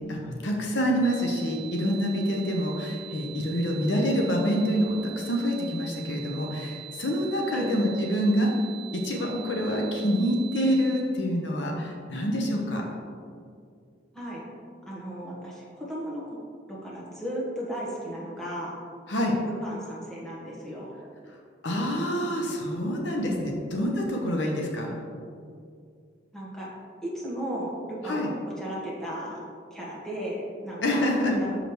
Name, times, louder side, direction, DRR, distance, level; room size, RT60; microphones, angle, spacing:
voice 1, 0.1-8.5 8.9-12.8 19.1-19.3 21.6-24.9 28.0-28.3 30.8-31.4, equal, 75° left, 0 dB, 0.8 m, -26 dB
sound 1, 1.0-11.0, right 13 dB, 75° right, 1.0 m, -43 dB
voice 2, 14.1-14.4 14.9-16.2 16.7-18.7 19.6-20.9 26.3-26.7 27.0-28.3 28.6-29.4 29.7-31.6, equal, 5° left, -7 dB, 1.3 m, -35 dB
6.6 x 4.9 x 3.1 m, 2.3 s
head